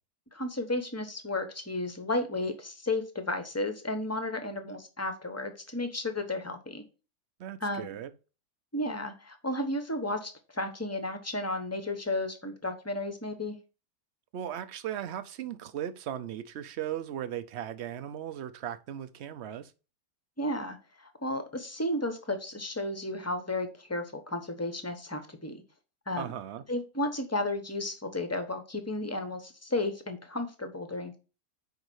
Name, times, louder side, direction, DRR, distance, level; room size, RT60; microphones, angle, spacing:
voice 1, 0.3-6.8 7.6-8.0 8.7-13.5 20.4-20.8 21.2-25.6 26.1-26.3 26.7-31.2, left 2 dB, 15° left, 0.7 m, -33 dB
voice 2, 7.4-8.1 14.3-19.7 26.2-26.6, right 10 dB, 65° right, 0.7 m, -37 dB
5.2 x 4.8 x 6.2 m
omnidirectional pair, 1.7 m